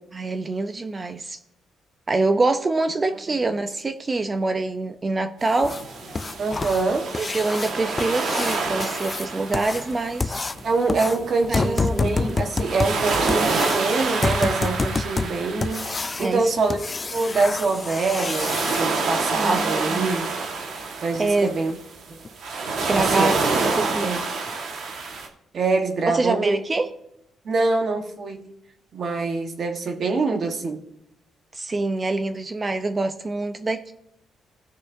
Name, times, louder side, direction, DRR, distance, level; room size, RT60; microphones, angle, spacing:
voice 1, 0.1-1.4 2.1-5.8 7.1-10.4 11.5-12.1 16.2-16.4 19.4-20.1 21.2-21.5 22.9-24.1 26.1-26.9 31.5-33.9, right 3 dB, 30° right, 9 dB, 0.6 m, -25 dB
sound 1, 5.4-25.3, right 3 dB, 70° right, 1.6 m, -28 dB
sound 2, 5.6-18.8 21.1-21.2 21.7-21.8 22.2-22.3 22.8-22.9 23.4-23.5 23.9-24.0 24.5-24.6, left 3 dB, 25° left, 0.3 m, -29 dB
voice 2, 6.4-7.1 10.6-20.3 21.0-21.8 22.1-22.2 22.9-23.4 23.8-24.2 25.5-26.6 27.4-28.4 28.9-30.8, right 3 dB, 55° right, 4 dB, 1.4 m, -25 dB
16.5 x 6.5 x 2.7 m, 0.82 s
cardioid pair, 90°, 0 cm